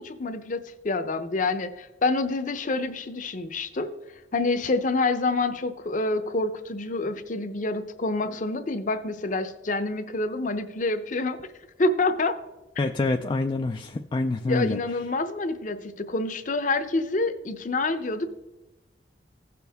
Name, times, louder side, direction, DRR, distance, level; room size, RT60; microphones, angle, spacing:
voice 1, 0.0-3.9 4.3-11.4 11.8-12.4 14.5-18.3, left 3 dB, 45° left, 10 dB, 0.7 m, -27 dB
voice 2, 12.8-14.8, left 3 dB, 25° left, 5 dB, 0.3 m, -26 dB
16.0 x 6.1 x 3.5 m, 1.1 s
head